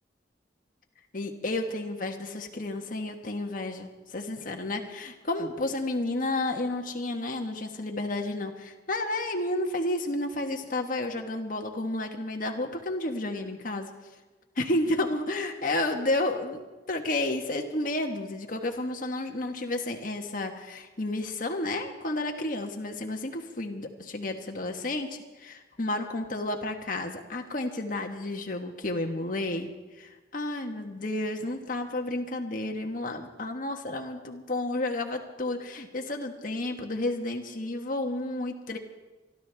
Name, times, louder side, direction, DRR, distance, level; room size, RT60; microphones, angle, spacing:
voice 1, 1.1-13.9 14.6-16.6 16.9-29.7 30.0-38.8, left 2 dB, 45° left, 3 dB, 1.4 m, -31 dB
27.0 x 12.5 x 3.4 m, 1.2 s
head